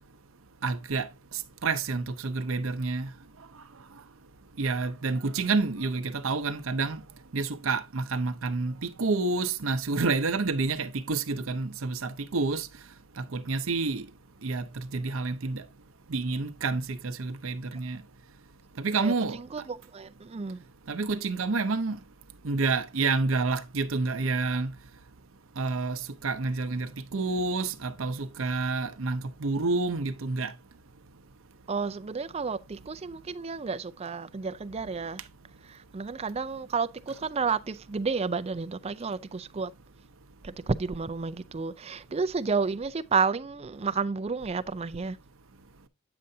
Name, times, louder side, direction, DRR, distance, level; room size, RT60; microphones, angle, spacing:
voice 1, 0.6-1.1 1.6-3.1 4.6-7.0 7.3-12.7 13.2-14.0 14.4-14.6 14.9-15.6 16.1-18.0 18.8-19.4 20.9-22.0 22.4-24.7 25.6-30.5, right 3 dB, 75° right, 0.7 m, -29 dB
voice 2, 19.5-20.6 31.7-35.2 35.9-39.7 40.4-45.2, right 5 dB, 30° right, 0.4 m, -31 dB
8.8 x 6.6 x 2.7 m
head